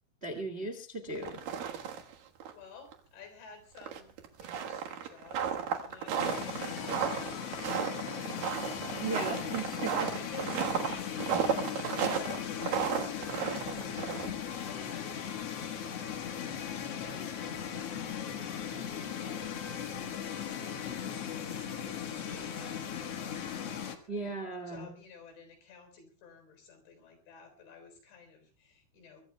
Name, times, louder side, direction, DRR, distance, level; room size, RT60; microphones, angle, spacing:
voice 1, 0.2-1.4 9.0-10.1 24.1-24.9, right 3 dB, 40° right, 6 dB, 0.9 m, -37 dB
sound 1, 1.1-2.1 2.4-2.5 2.9-3.0 3.8-14.5, right 8 dB, 60° right, 2.9 m, -33 dB
voice 2, 2.6-9.6 10.1-14.3 14.6-19.6 19.9-24.3 24.7-29.2, left 5 dB, 85° left, 7 dB, 6.2 m, -53 dB
sound 2, 6.2-24.0, left 8 dB, 60° left, 1.6 m, -38 dB
24.0 x 22.0 x 2.3 m, 0.35 s
omnidirectional pair, 5.0 m